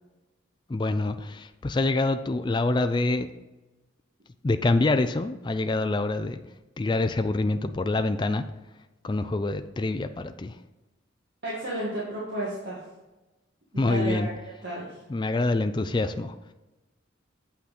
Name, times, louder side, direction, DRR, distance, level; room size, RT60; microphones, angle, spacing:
voice 1, 0.7-3.3 4.4-6.4 6.8-8.4 9.0-10.6 13.8-14.3 15.1-16.3, left 2 dB, 25° left, 9 dB, 0.3 m, -26 dB
voice 2, 11.4-12.8 13.7-14.3 14.6-15.0, right 1 dB, 55° right, -8 dB, 2.1 m, -32 dB
7.7 x 5.8 x 4.2 m, 1.1 s
head